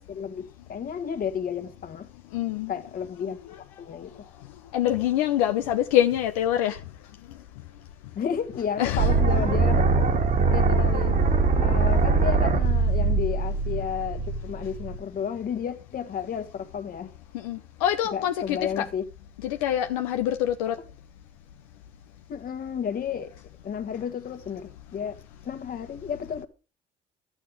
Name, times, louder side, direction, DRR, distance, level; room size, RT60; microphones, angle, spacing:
voice 1, 0.1-2.1 2.7-4.2 8.1-10.1 10.5-11.2 11.6-17.1 18.1-19.0 22.3-23.3 23.6-25.2 25.4-26.5, left 7 dB, 50° left, 1.6 m, -32 dB
voice 2, 2.3-2.7 3.5-3.6 4.7-6.8 8.8-9.1 17.3-18.9 19.4-20.8, left 11 dB, 90° left, 0.7 m, -25 dB
sound 1, 9.0-15.0, right 4 dB, 55° right, 2.4 m, -22 dB
12.0 x 8.9 x 4.8 m
hypercardioid pair, 65°, 18 cm